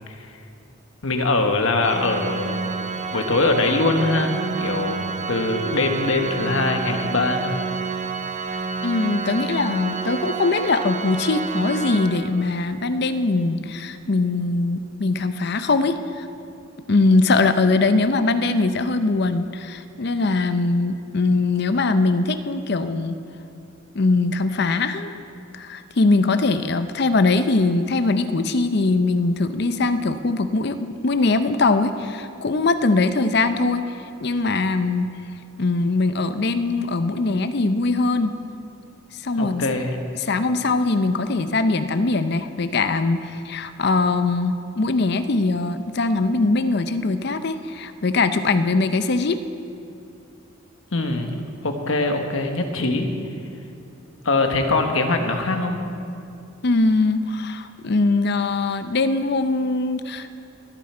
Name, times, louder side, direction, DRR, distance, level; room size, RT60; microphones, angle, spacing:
voice 1, 1.0-2.7 3.1-7.6 39.4-40.0 50.9-51.4 51.6-53.1 54.2-55.8, left 2 dB, 75° left, 5 dB, 1.2 m, -22 dB
Organ, 1.8-12.6, right 4 dB, 35° right, 0.7 m, -29 dB
voice 2, 8.8-16.3 16.9-23.2 23.9-25.2 25.5-33.9 34.2-35.2 35.6-38.4 39.2-39.6 40.2-49.4 56.6-60.3, left 3 dB, 50° left, 10 dB, 0.6 m, -21 dB
20.5 x 9.4 x 4.4 m, 2.6 s
head